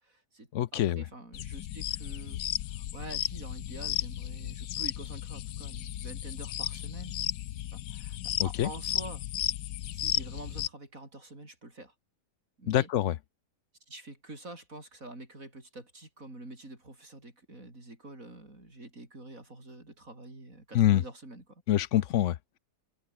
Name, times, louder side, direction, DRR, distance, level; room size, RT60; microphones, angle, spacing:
voice 1, 0.0-2.4 2.7-7.2 7.7-9.2 9.9-11.9 12.6-12.9 13.9-21.6, right 2 dB, 55° right, 7.3 m, -47 dB
voice 2, 0.5-1.0 8.4-8.7 12.7-13.2 20.7-21.0 21.7-22.6, left 12 dB, 65° left, 0.8 m, -26 dB
sound 1, 1.3-10.7, left 12 dB, 80° left, 1.4 m, -34 dB
omnidirectional pair, 1.8 m